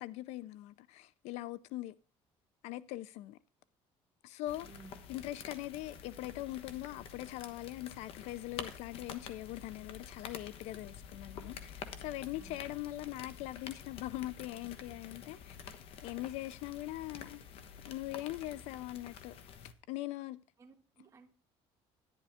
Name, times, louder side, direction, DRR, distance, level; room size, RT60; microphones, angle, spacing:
voice 1, 0.0-1.9 2.6-3.4 4.2-4.7 5.1-15.6 16.0-17.4 17.8-19.4 19.9-20.4, left 16 dB, 75° left, 0.5 m, -41 dB
sound 1, 4.5-19.7, left 7 dB, 55° left, 1.1 m, -49 dB
voice 2, 4.6-5.1 11.8-12.6 20.6-21.3, right 4 dB, 25° right, 1.7 m, -58 dB
11.0 x 10.5 x 3.5 m
cardioid pair, 155°, 11 cm